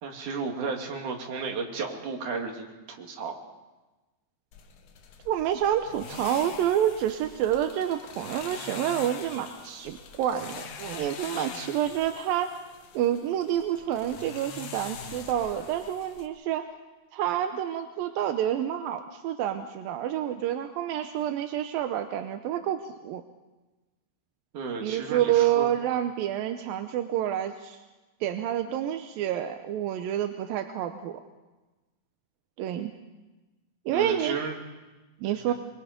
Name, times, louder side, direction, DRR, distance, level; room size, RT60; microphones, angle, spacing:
voice 1, 0.0-3.4 24.5-25.7 33.9-34.6 35.5-35.6, right 4 dB, 50° right, 1 dB, 3.5 m, -33 dB
sound 1, 4.5-16.3, left 6 dB, 60° left, 2.3 m, -43 dB
voice 2, 5.3-12.6 12.9-16.7 17.1-23.2 24.8-27.8 28.2-31.2 32.6-32.9 33.9-34.4 35.2-35.5, right 11 dB, 75° right, 7 dB, 2.3 m, -28 dB
24.5 x 23.0 x 5.2 m, 1.1 s
omnidirectional pair, 4.8 m